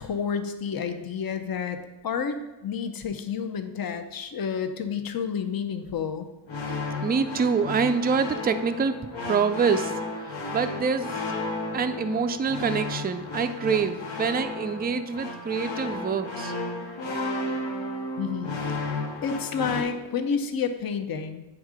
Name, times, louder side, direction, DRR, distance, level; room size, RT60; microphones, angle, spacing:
voice 1, 0.0-1.8 2.0-6.3 18.2-21.4, left 6 dB, 50° left, 7 dB, 0.7 m, -30 dB
sound 1, 6.5-19.8, left 2 dB, 75° left, 1.3 m, -33 dB
voice 2, 7.0-9.9 10.5-11.1 11.7-16.5, right 5 dB, 25° right, 9 dB, 0.3 m, -26 dB
9.0 x 3.6 x 4.9 m, 1.1 s
wide cardioid pair, 110°, 45 cm